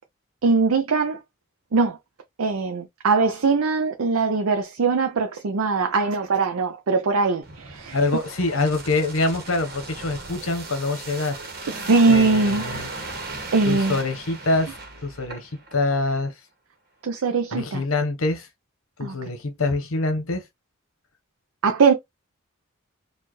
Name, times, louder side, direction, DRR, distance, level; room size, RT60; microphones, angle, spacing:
voice 1, 0.4-1.2 1.7-2.0 2.4-8.0 11.7-13.1 13.5-14.0 17.0-17.8 19.0-19.2 21.6-21.9, right 4 dB, 85° right, 0.6 m, -21 dB
sound 1, 7.4-15.8 16.1-16.2, right 3 dB, 45° right, 1.2 m, -36 dB
voice 2, 7.9-11.4 12.1-12.9 13.6-14.7 15.0-16.3 17.5-18.5 19.0-20.4, left 2 dB, 75° left, 1.0 m, -25 dB
4.4 x 2.5 x 3.0 m
head